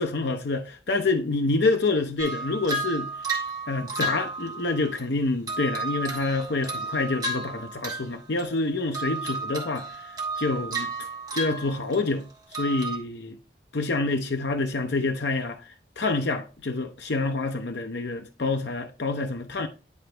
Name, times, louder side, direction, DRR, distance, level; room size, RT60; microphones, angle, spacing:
voice 1, 0.0-3.1 3.7-10.9 11.3-13.4 13.7-15.6 16.0-19.7, left 3 dB, 65° left, 0.7 m, -27 dB
sound 1, 2.2-5.0 5.5-8.1 8.4-8.7 8.9-12.2 12.5-13.0, right 2 dB, 20° right, 1.3 m, -33 dB
9.6 x 3.9 x 3.3 m
head